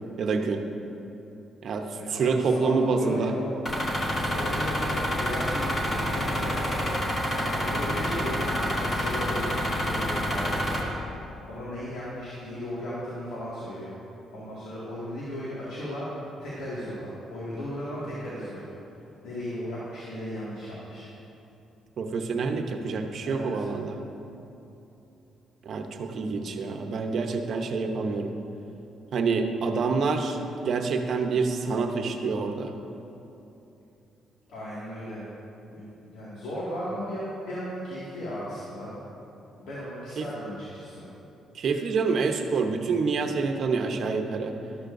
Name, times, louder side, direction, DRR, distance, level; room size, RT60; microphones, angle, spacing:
voice 1, 0.2-0.6 1.6-3.3 22.0-24.0 25.6-28.3 29.1-30.4 30.6-32.7 40.2-40.3 41.5-44.5, right 4 dB, 60° right, 5 dB, 0.8 m, -27 dB
voice 2, 1.9-3.5 4.1-6.7 7.3-10.6 11.5-14.0 14.3-16.1 16.4-18.6 19.2-21.1 23.2-23.6 34.5-35.2 35.7-39.0 39.6-41.1, equal, 90° left, -9 dB, 2.1 m, -36 dB
sound 1, 3.7-10.8, equal, 30° left, 1.9 m, -28 dB
12.5 x 11.5 x 2.6 m, 2.9 s
cardioid pair, 90°, 0 cm